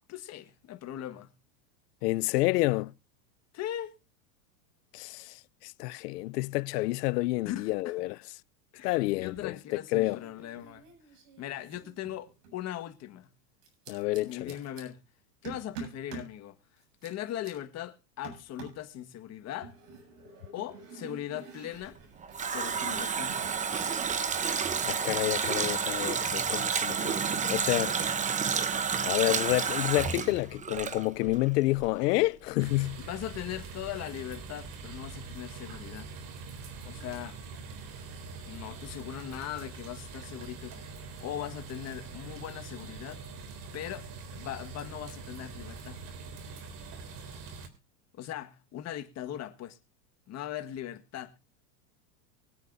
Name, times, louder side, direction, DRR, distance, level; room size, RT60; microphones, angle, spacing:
voice 1, 0.1-1.3 3.5-4.0 7.4-7.9 8.7-10.9 11.4-13.3 14.2-15.0 15.4-16.6 17.0-19.7 20.5-22.0 22.5-23.4 33.0-36.1 36.8-37.4 38.5-43.2 43.7-46.1 48.1-49.8 50.3-51.3, left 12 dB, 30° left, 1.7 m, -39 dB
voice 2, 2.0-2.9 4.9-8.2 8.8-9.5 9.9-10.2 13.9-14.6 24.9-28.0 29.0-33.0, left 20 dB, 75° left, 0.7 m, -29 dB
sound 1, 9.2-9.7 10.0-12.6 13.6-14.8 15.4-16.3 16.8-17.5 18.2-18.9 19.6-23.6 23.9-25.2, right 5 dB, 65° right, 7.8 m, -48 dB
Water tap faucet, 21.9-31.5 31.8-31.9, right 6 dB, 15° right, 0.9 m, -30 dB
sound 2, 32.6-47.7, right 4 dB, 40° right, 3.3 m, -44 dB
24.0 x 8.3 x 2.6 m
supercardioid pair, 135°, 49 cm